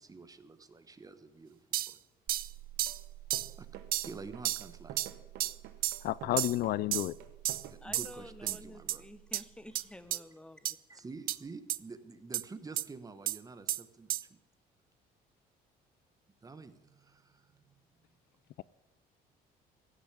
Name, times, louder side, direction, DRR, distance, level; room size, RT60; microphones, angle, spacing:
voice 1, 0.0-2.0 3.6-3.7 4.0-5.0 5.4-5.5 7.7-9.1 10.1-10.2 10.9-14.3 16.4-17.7, right 4 dB, 20° right, 1.1 m, -48 dB
sound 1, 1.7-1.9 2.3-2.5 2.8-3.0 3.3-3.5 3.9-4.1 4.4-4.6 5.0-5.1 5.4-5.5 5.8-6.0 6.4-6.6 6.9-7.1 7.4-7.6 7.9-8.1 8.5-8.6 8.9-9.0 9.3-9.4 9.7-9.8 10.1-10.2 10.6-10.7 11.3-11.4 11.7-11.8 12.3-12.4 12.8-12.9 13.3-13.4 13.7-13.8 14.1-14.2, right 14 dB, 60° right, 0.5 m, -32 dB
sound 2, 2.3-10.1, right 15 dB, 40° right, 5.9 m, -53 dB
sound 3, 2.9-3.0 3.3-7.7, right 10 dB, 80° right, 1.0 m, -48 dB
voice 2, 6.0-7.2, left 15 dB, 65° left, 0.4 m, -31 dB
voice 3, 7.8-10.7, left 1 dB, 5° left, 0.9 m, -50 dB
16.0 x 6.9 x 8.2 m
cardioid pair, 110°, 17 cm